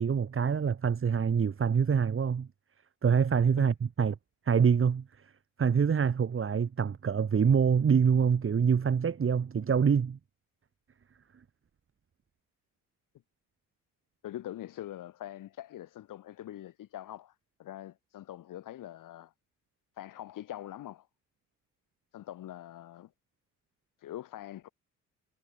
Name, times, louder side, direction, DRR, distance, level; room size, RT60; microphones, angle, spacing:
voice 1, 0.0-2.5 3.0-4.1 4.5-5.0 5.6-10.2, right 6 dB, 40° right, 2.7 m, -25 dB
voice 2, 14.2-17.3 17.6-19.3 20.0-21.1 22.1-23.1 24.0-24.7, left 13 dB, 65° left, 6.8 m, -43 dB
supercardioid pair, 70°, 34 cm